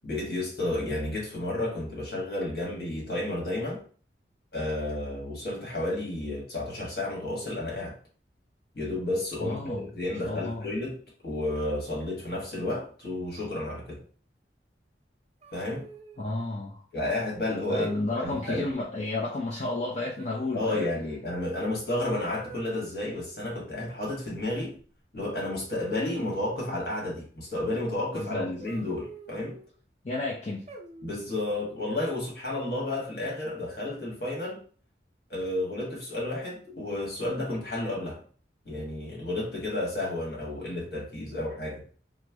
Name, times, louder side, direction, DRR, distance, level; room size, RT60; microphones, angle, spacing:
voice 1, 0.0-3.8 4.5-7.9 8.7-11.0 11.2-14.0 15.5-15.9 16.9-17.9 18.2-18.6 20.5-24.8 25.1-29.6 31.0-34.6 35.3-38.2 38.6-41.8, left 1 dB, 55° left, -3 dB, 1.4 m, -31 dB
voice 2, 9.4-9.9 10.2-10.7 16.2-16.8 17.7-20.8 28.1-28.5 30.0-30.6, left 2 dB, 35° left, -4 dB, 0.5 m, -32 dB
sound 1, 15.4-16.3 17.5-17.9 18.4-18.7 20.2-20.8 22.3-22.9 24.8-24.9 25.7-26.7 28.6-29.7 30.7-31.3 32.5-33.1, right 2 dB, 35° right, 0.4 m, -47 dB
3.1 x 2.0 x 3.4 m, 0.41 s
head